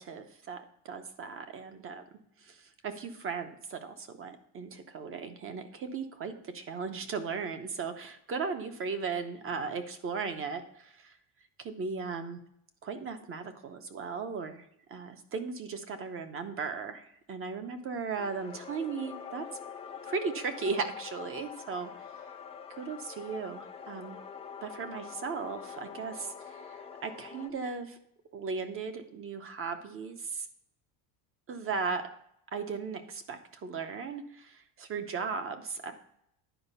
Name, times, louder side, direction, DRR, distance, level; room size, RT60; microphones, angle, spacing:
voice 1, 0.0-2.0 2.4-11.1 11.6-12.4 12.8-19.5 20.0-21.9 22.8-24.2 24.6-28.0 28.3-30.5 31.5-32.1 32.5-35.9, right 5 dB, 30° right, 9 dB, 0.8 m, -37 dB
sound 1, 18.2-27.5, left 7 dB, 15° left, 0.4 m, -45 dB
10.0 x 4.9 x 5.5 m, 0.74 s
cardioid pair, 150°, 47 cm